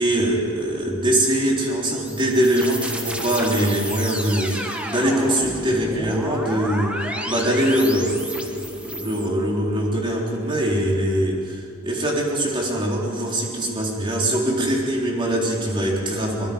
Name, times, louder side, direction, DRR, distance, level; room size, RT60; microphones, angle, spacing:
voice 1, 0.0-16.5, right 1 dB, 25° right, -2 dB, 4.0 m, -22 dB
sound 1, 1.6-9.3, equal, 5° right, 1.6 m, -31 dB
23.5 x 22.0 x 5.4 m, 2.3 s
head